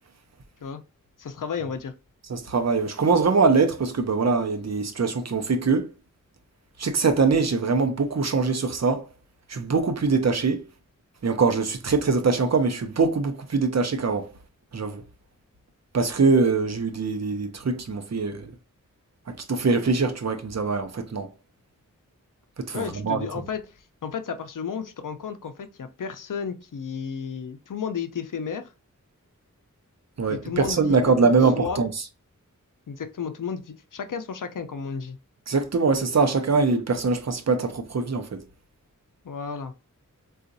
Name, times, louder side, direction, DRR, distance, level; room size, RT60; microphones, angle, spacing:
voice 1, 1.2-1.9 22.7-23.7 24.0-28.7 30.3-31.8 32.9-35.2 39.2-39.7, left 6 dB, 70° left, 0.6 m, -33 dB
voice 2, 2.3-5.9 6.8-9.1 9.5-10.6 11.2-14.3 14.7-15.0 15.9-18.5 19.3-21.3 22.6-23.3 30.2-31.9 35.5-38.4, right 4 dB, 55° right, 0.7 m, -23 dB
3.8 x 2.4 x 2.6 m
wide cardioid pair, 50°, 33 cm